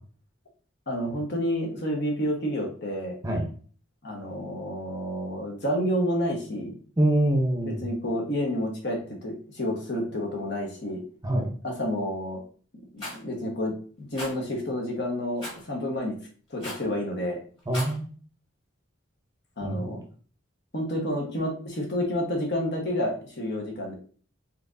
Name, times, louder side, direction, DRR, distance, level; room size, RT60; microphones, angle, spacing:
voice 1, 0.9-3.2 4.0-6.8 7.7-11.0 11.6-12.4 12.9-16.2 16.5-17.4 19.6-20.0 20.7-23.9, equal, 55° left, 0 dB, 1.2 m, -29 dB
voice 2, 7.0-7.9 11.2-11.5 17.7-18.1 19.6-19.9, right 1 dB, 15° right, 1 dB, 0.8 m, -24 dB
Rattle, 13.0-13.2 14.1-14.3 15.4-15.6 16.6-16.9 17.6-18.0, left 1 dB, 25° left, 1.9 m, -36 dB
4.4 x 3.6 x 2.7 m, 0.42 s
head